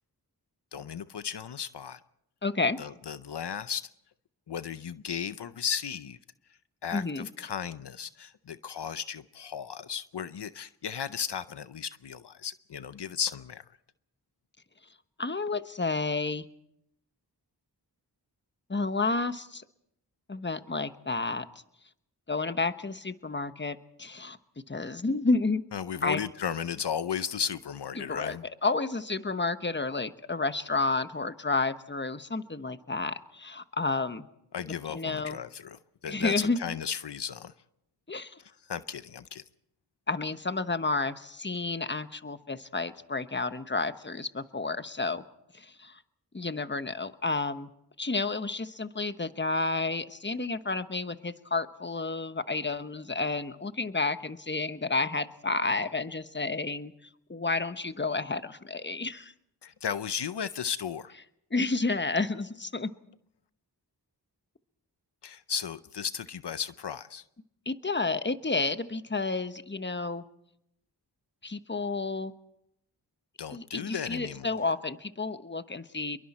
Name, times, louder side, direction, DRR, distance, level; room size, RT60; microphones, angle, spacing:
voice 1, 0.7-2.0 2.8-3.9 4.5-6.2 6.8-13.6 25.7-28.4 34.5-37.5 38.7-39.4 59.6-61.1 65.2-67.2 73.4-74.7, left 7 dB, 75° left, 0.7 m, -35 dB
voice 2, 2.4-2.8 6.9-7.3 15.2-16.4 18.7-19.6 20.3-21.4 22.3-24.4 24.7-25.6 26.0-26.2 27.9-34.3 34.9-35.4 36.1-36.6 38.1-38.4 40.1-45.2 45.5-46.0 46.3-47.7 48.0-56.9 57.3-59.3 61.5-62.9 67.7-70.2 71.4-72.3 73.5-76.2, left 3 dB, 25° left, 1.1 m, -31 dB
27.5 x 22.5 x 4.3 m
wide cardioid pair, 50°, 41 cm